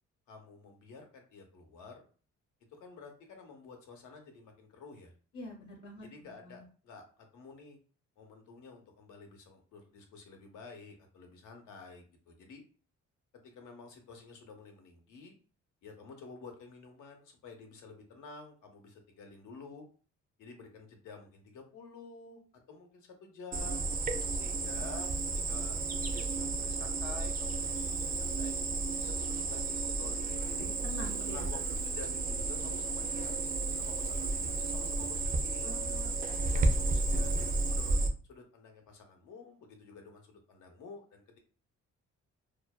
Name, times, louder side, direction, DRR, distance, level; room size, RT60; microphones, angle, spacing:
voice 1, 0.3-2.0 2.7-5.1 6.0-7.8 8.2-12.6 13.3-15.3 15.8-19.8 20.4-22.4 22.7-23.8 24.3-28.5 29.0-30.7 31.2-33.3 33.8-35.8 36.4-37.3 37.7-38.0 38.3-41.4, left 4 dB, 80° left, 3 dB, 0.7 m, -50 dB
voice 2, 5.3-6.6 30.6-31.5 35.6-36.4 36.9-37.2, left 2 dB, 45° left, -1 dB, 0.8 m, -47 dB
Cricket, 23.5-38.1, right 3 dB, 30° right, 0.4 m, -32 dB
2.5 x 2.1 x 2.3 m, 0.38 s
cardioid pair, 90°, 30 cm